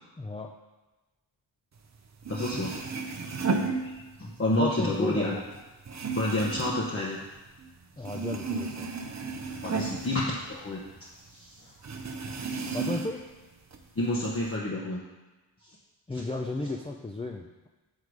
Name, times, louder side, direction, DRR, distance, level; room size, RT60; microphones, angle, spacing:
voice 1, 0.2-0.5 4.5-5.4 8.0-8.9 12.7-13.2 16.1-17.7, left 2 dB, 15° left, 0 dB, 0.4 m, -34 dB
sound 1, 2.0-2.1 2.2-4.5 4.8-7.7 8.0-11.0 11.3-11.4 11.8-13.3 13.7-14.5, right 4 dB, 35° right, 0.7 m, -34 dB
voice 2, 2.3-2.9 3.5-5.3 6.2-7.2 9.6-11.7 12.5-12.8 14.0-15.0, left 1 dB, 30° left, -4 dB, 1.0 m, -30 dB
6.6 x 3.7 x 4.7 m, 1.1 s
cardioid pair, 60°, 46 cm